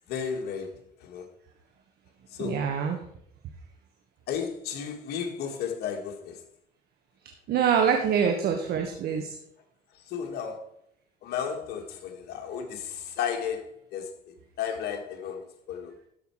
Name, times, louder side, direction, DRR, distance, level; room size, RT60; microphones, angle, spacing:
voice 1, 0.1-1.3 2.3-2.6 4.3-6.4 9.9-10.7 11.2-15.9, left 7 dB, 75° left, 3 dB, 2.0 m, -34 dB
voice 2, 2.4-3.0 7.5-9.4, right 7 dB, 70° right, 4 dB, 1.4 m, -25 dB
13.0 x 5.7 x 4.8 m, 0.70 s
cardioid pair, 110°, 17 cm